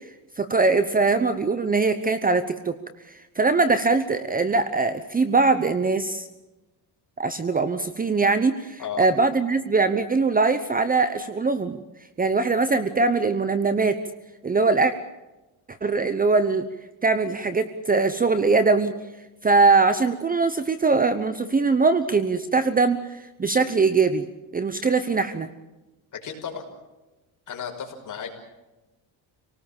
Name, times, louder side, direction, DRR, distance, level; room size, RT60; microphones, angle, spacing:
voice 1, 0.4-2.8 3.4-6.3 7.2-11.8 12.2-14.0 14.4-14.9 15.8-16.6 17.0-18.9 19.4-24.3 24.5-25.5, right 4 dB, 20° right, 11 dB, 1.0 m, -21 dB
voice 2, 26.2-26.6 27.5-28.4, left 7 dB, 40° left, 3 dB, 5.6 m, -34 dB
27.5 x 19.0 x 7.2 m, 1.1 s
cardioid pair, 135°, 46 cm